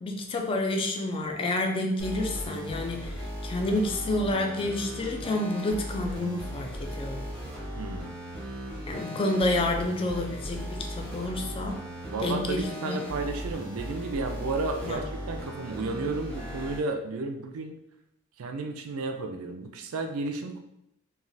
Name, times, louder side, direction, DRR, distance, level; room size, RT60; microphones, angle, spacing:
voice 1, 0.0-7.2 8.9-11.8 12.2-13.0 14.8-15.0, left 2 dB, 25° left, 3 dB, 0.3 m, -29 dB
sound 1, 2.0-16.8, equal, 5° left, 0.8 m, -37 dB
voice 2, 7.8-8.1 12.1-17.7 18.4-20.6, right 3 dB, 90° right, 5 dB, 0.4 m, -32 dB
3.1 x 2.3 x 2.6 m, 0.81 s
head